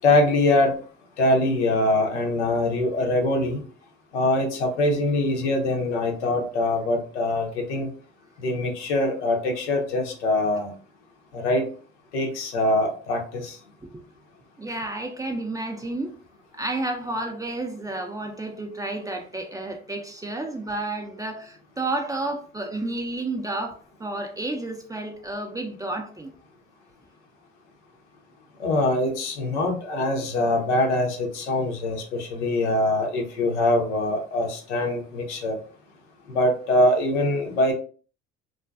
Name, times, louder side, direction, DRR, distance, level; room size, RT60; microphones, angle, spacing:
voice 1, 0.0-0.8 1.2-3.6 4.1-7.9 8.4-10.7 11.3-11.6 12.1-13.6 28.6-35.6 36.3-37.7, left 1 dB, 80° left, 0.7 m, -23 dB
voice 2, 14.6-16.1 16.6-26.3, right 2 dB, 10° right, 0.4 m, -31 dB
2.5 x 2.2 x 2.3 m
hypercardioid pair, 60°, 34 cm